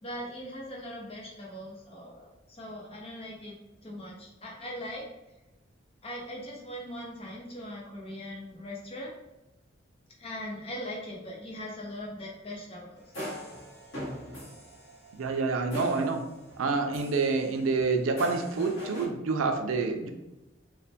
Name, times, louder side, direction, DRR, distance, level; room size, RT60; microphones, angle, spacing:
voice 1, 0.0-3.6 3.8-5.0 6.0-9.1 10.2-13.0, equal, 30° left, -2 dB, 0.6 m, -40 dB
sound 1, 13.0-16.7 16.9-19.1, equal, 80° left, 0.9 m, -41 dB
voice 2, 15.1-16.2 16.6-20.1, right 4 dB, 90° right, 5 dB, 0.4 m, -27 dB
3.2 x 2.1 x 2.7 m, 0.98 s
head